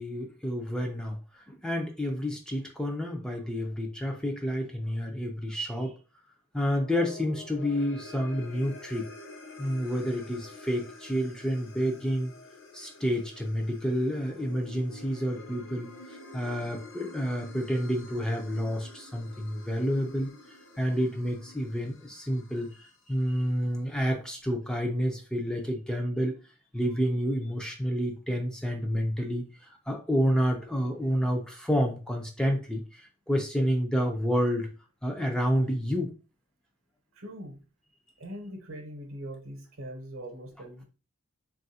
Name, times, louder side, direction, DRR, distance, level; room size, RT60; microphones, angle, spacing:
voice 1, 0.0-6.0 6.5-9.1 9.6-12.3 12.7-20.3 20.8-26.4 26.7-34.7 35.0-36.1, equal, 5° left, 1 dB, 0.4 m, -29 dB
sound 1, 6.5-23.0, left 2 dB, 60° left, 0.5 m, -48 dB
voice 2, 37.1-37.6 38.2-40.8, right 1 dB, 65° right, 4 dB, 0.8 m, -41 dB
3.5 x 2.3 x 2.7 m, 0.34 s
head